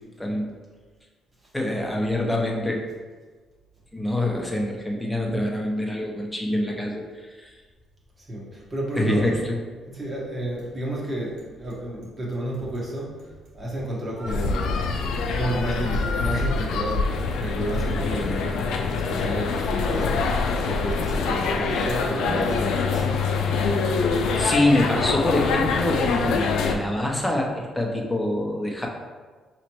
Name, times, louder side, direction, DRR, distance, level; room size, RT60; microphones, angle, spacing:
voice 1, 0.2-0.5 1.5-2.9 3.9-7.5 9.0-9.6 24.4-28.9, left 1 dB, 5° left, -1 dB, 0.8 m, -25 dB
Bicycle, 7.4-23.7, left 1 dB, 75° right, 1.3 m, -41 dB
voice 2, 8.2-9.4 9.9-15.0 15.3-23.2, right 1 dB, 30° right, -4 dB, 1.3 m, -31 dB
sound 1, 14.3-26.8, left 4 dB, 85° left, 0.4 m, -25 dB
4.9 x 3.1 x 3.0 m, 1.4 s
cardioid pair, 90°, 0 cm